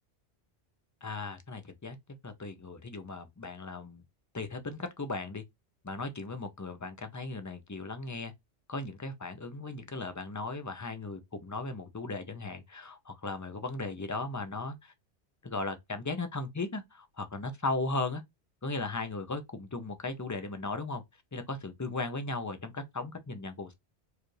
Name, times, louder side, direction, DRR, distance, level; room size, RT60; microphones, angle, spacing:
voice 1, 1.0-2.0 2.2-4.0 4.3-5.4 5.8-8.3 8.7-14.9 15.4-18.2 18.6-21.0 21.3-23.7, left 3 dB, 20° left, 0.5 m, -37 dB
4.7 x 2.5 x 3.1 m
omnidirectional pair, 1.1 m